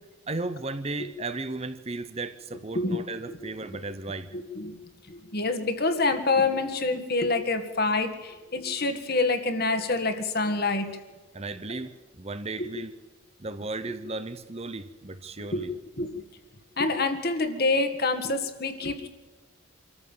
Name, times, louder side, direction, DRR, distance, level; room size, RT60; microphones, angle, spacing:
voice 1, 0.3-4.3 11.3-12.9 13.4-15.8, right 2 dB, 30° right, 0.9 m, -35 dB
voice 2, 4.3-4.7 5.1-10.9 12.6-12.7 15.5-15.7 16.0-16.1 16.8-19.1, left 3 dB, 45° left, 2.0 m, -26 dB
26.0 x 14.0 x 7.4 m
head